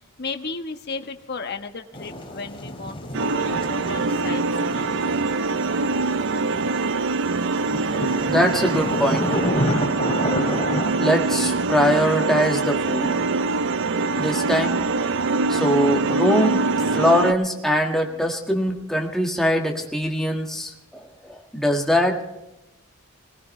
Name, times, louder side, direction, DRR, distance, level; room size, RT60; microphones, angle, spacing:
voice 1, 0.2-5.0 18.1-18.3, left 4 dB, 50° left, 6 dB, 1.2 m, -35 dB
sound 1, 1.9-7.2 7.5-10.9, equal, 25° left, 2.6 m, -30 dB
sound 2, 3.1-17.3, right 3 dB, 60° right, 0.6 m, -23 dB
voice 2, 8.2-9.4 11.0-13.1 14.1-14.8 15.5-16.6 16.9-22.2, equal, ahead, 1 dB, 1.7 m, -22 dB
20.5 x 19.5 x 3.3 m, 0.94 s
head